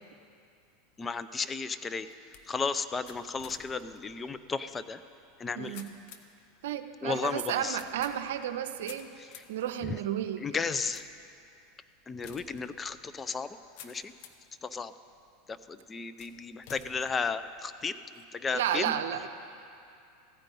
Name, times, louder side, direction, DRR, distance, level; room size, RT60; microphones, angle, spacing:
sound 1, 0.9-14.5 15.1-15.6 16.2-18.0, left 8 dB, 60° left, 0.9 m, -54 dB
voice 1, 1.0-2.1 2.5-5.0 5.4-5.8 7.0-7.8 9.8-10.0 10.4-11.1 12.1-13.6 13.8-14.1 14.6-14.9 15.5-17.9 18.3-18.9, left 4 dB, 20° left, 12 dB, 0.5 m, -34 dB
voice 2, 5.6-5.9 6.6-9.1 9.5-10.5 18.5-19.3, right 10 dB, 75° right, 9 dB, 0.6 m, -32 dB
15.0 x 5.2 x 9.1 m, 2.5 s
hypercardioid pair, 95°, 0 cm